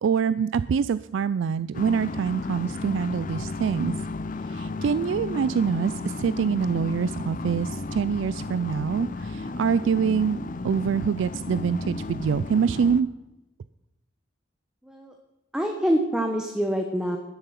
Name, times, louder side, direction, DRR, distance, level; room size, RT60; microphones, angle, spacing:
voice 1, 0.0-3.9 4.5-13.1, right 6 dB, 90° right, 16 dB, 0.3 m, -25 dB
sound 1, 1.7-13.0, left 3 dB, 45° left, 0.6 m, -34 dB
voice 2, 14.8-15.1 15.5-17.2, equal, 5° right, 3 dB, 1.1 m, -25 dB
12.0 x 10.5 x 5.8 m, 0.95 s
head